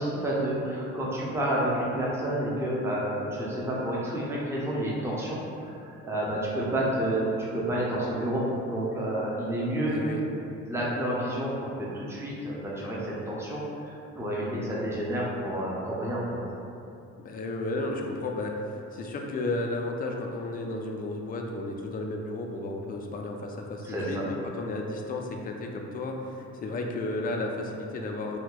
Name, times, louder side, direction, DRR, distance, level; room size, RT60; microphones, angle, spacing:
voice 1, 0.0-10.0 10.7-11.5 11.8-16.4 23.9-24.2, right 1 dB, 10° right, -6 dB, 0.6 m, -30 dB
voice 2, 9.9-10.3 17.2-18.5 18.9-28.4, left 2 dB, 30° left, 1 dB, 0.4 m, -33 dB
2.7 x 2.2 x 3.8 m, 2.6 s
cardioid pair, 90°, 30 cm